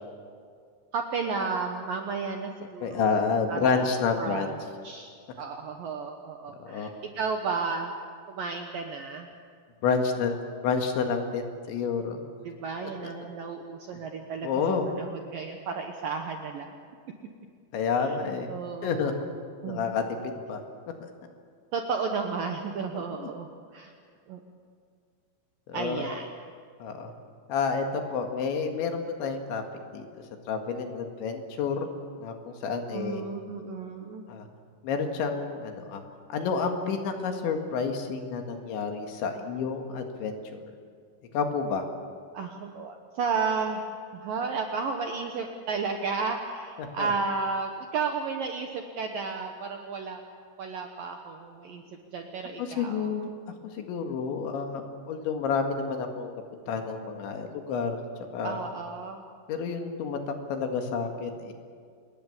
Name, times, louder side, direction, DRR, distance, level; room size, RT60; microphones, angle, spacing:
voice 1, 0.9-3.2 3.5-4.6 4.8-7.9 8.3-9.3 12.4-14.5 15.0-16.7 18.0-18.2 18.5-19.3 19.6-19.9 21.7-23.9 24.3-24.4 25.7-26.3 32.9-34.3 42.3-43.8 44.1-50.2 50.6-51.8 52.1-53.1 58.4-59.2, right 5 dB, 70° right, 4 dB, 2.2 m, -33 dB
voice 2, 2.8-4.5 6.6-6.9 9.8-10.4 10.6-12.2 14.4-14.9 17.7-18.5 18.8-19.1 19.6-20.6 23.2-23.3 25.7-26.1 26.8-27.1 27.5-29.6 29.9-30.1 30.5-31.9 32.2-33.2 34.3-34.5 34.8-36.0 36.3-40.4 41.3-41.8 46.8-47.1 52.6-53.3 53.8-56.3 56.7-58.0 58.3-58.6 59.5-60.2 60.5-61.5, left 5 dB, 70° left, 4 dB, 4.1 m, -29 dB
26.5 x 21.0 x 7.3 m, 2.1 s
omnidirectional pair, 5.6 m